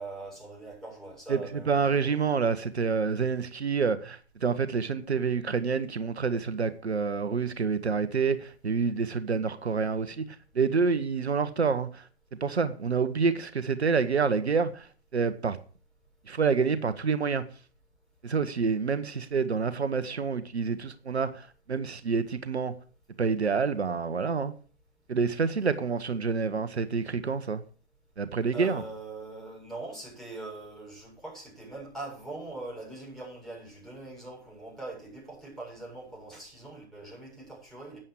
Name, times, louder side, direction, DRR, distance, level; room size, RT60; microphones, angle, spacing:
voice 1, 0.0-2.3 28.5-38.0, right 2 dB, ahead, 7.2 m, -42 dB
voice 2, 1.7-12.1 12.4-15.6 16.3-17.4 18.2-22.7 23.2-24.5 25.1-27.6 28.2-28.8, right 5 dB, 75° right, 1.2 m, -28 dB
12.5 x 8.9 x 4.8 m
figure-of-eight pair, 120°, 33 cm